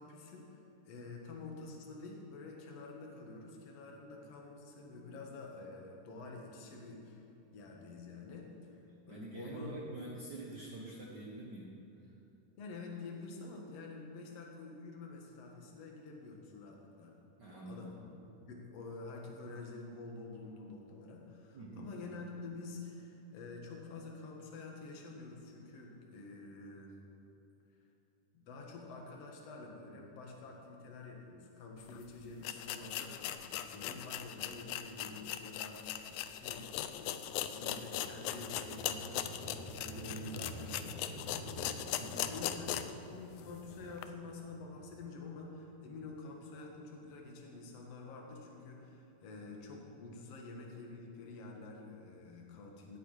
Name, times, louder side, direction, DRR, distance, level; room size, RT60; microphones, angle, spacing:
voice 1, 0.0-7.2 7.5-8.8 9.1-10.0 12.6-17.1 17.4-17.9 18.4-26.9 28.3-35.8 36.3-42.0 42.3-53.0, left 3 dB, 55° left, 0 dB, 2.4 m, -48 dB
voice 2, 9.1-11.7 12.0-12.1 17.4-17.9 21.5-21.9 42.0-42.3, right 2 dB, 85° right, -3 dB, 0.9 m, -46 dB
sound 1, 31.9-32.0 32.4-43.0 43.4-43.5 44.0-44.1, left 11 dB, 80° left, 1.9 m, -39 dB
sound 2, 36.7-46.9, right 1 dB, 50° right, 2.7 m, -50 dB
17.0 x 10.5 x 5.0 m, 2.8 s
omnidirectional pair, 3.8 m